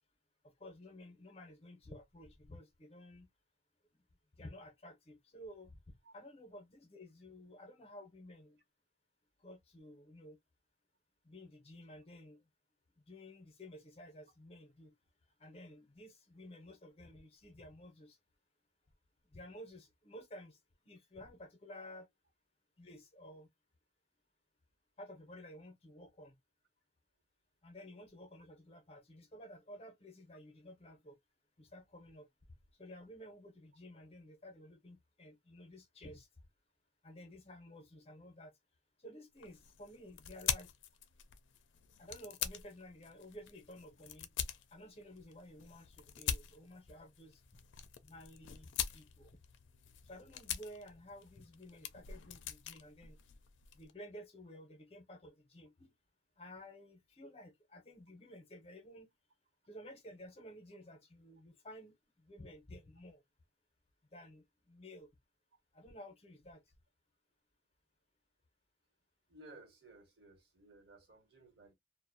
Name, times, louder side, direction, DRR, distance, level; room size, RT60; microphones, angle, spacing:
voice 1, 0.6-3.3 4.4-5.8 6.1-8.6 9.4-10.4 11.2-12.4 13.1-14.9 15.4-18.2 19.3-20.6 20.8-22.1 22.8-23.5 25.0-26.3 27.6-31.2 31.6-32.3 32.8-36.3 37.0-38.5 39.0-40.7 42.0-44.3 44.7-47.4 48.0-49.3 50.1-53.2 53.7-55.9 56.4-59.1 59.7-63.2 64.1-65.1 65.7-66.6, left 1 dB, 30° left, 0.6 m, -53 dB
sound 1, 39.4-53.9, left 9 dB, 85° left, 0.4 m, -44 dB
voice 2, 69.3-71.7, right 2 dB, 60° right, 1.0 m, -58 dB
2.5 x 2.1 x 2.5 m
head